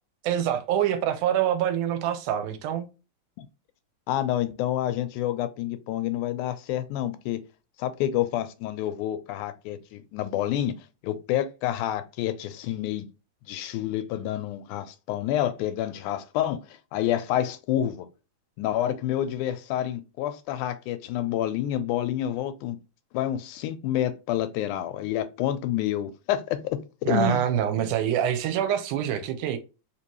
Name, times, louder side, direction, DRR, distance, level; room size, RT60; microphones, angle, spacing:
voice 1, 0.2-2.9 27.1-29.6, right 10 dB, 80° right, 2.2 m, -25 dB
voice 2, 4.1-7.4 7.8-10.8 11.0-13.1 13.5-16.6 16.9-18.1 18.6-22.8 23.1-26.8 27.1-27.4, left 11 dB, 85° left, 2.0 m, -28 dB
4.6 x 2.9 x 2.9 m
omnidirectional pair, 3.6 m